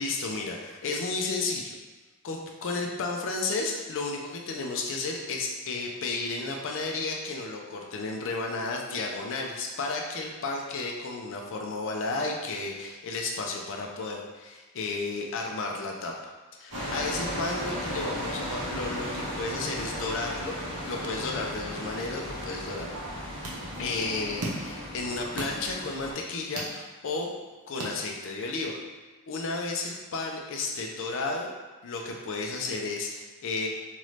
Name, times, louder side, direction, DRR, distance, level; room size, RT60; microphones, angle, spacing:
voice 1, 0.0-1.8 2.2-16.1 16.6-20.6 20.8-22.9 23.8-27.3 27.7-28.8 29.3-31.5 31.8-33.7, left 3 dB, 60° left, 0 dB, 0.4 m, -33 dB
sound 1, 16.7-26.1, equal, 60° right, 1.2 m, -35 dB
sound 2, 22.9-28.6, right 1 dB, 80° right, 0.7 m, -41 dB
3.0 x 2.6 x 3.2 m, 1.3 s
head